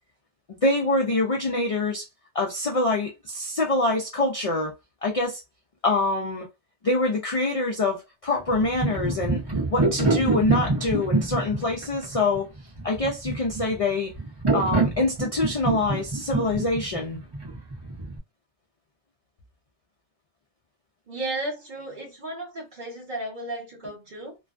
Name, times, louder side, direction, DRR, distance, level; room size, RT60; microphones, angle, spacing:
voice 1, 0.5-2.1 2.3-4.7 5.0-5.4 5.8-6.5 6.8-9.4 9.7-12.5 12.8-14.1 14.5-17.2, left 2 dB, 50° left, 0.4 m, -25 dB
sound 1, 8.5-18.2, right 2 dB, 25° right, 0.7 m, -26 dB
voice 2, 21.1-24.4, right 2 dB, 45° right, 1.1 m, -34 dB
2.4 x 2.2 x 2.4 m
omnidirectional pair, 1.2 m